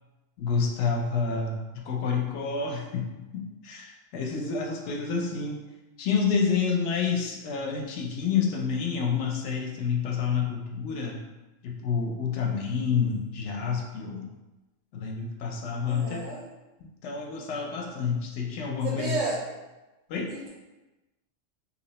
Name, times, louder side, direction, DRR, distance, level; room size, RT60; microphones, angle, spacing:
voice 1, 0.4-5.6 6.0-11.2 11.6-14.3 14.9-16.2 16.8-19.2 20.1-20.3, left 6 dB, 70° left, 1 dB, 0.8 m, -29 dB
voice 2, 15.9-16.4 18.8-19.4 20.3-20.5, right 3 dB, 80° right, -4 dB, 1.0 m, -32 dB
2.8 x 2.0 x 4.0 m, 1.1 s
omnidirectional pair, 1.3 m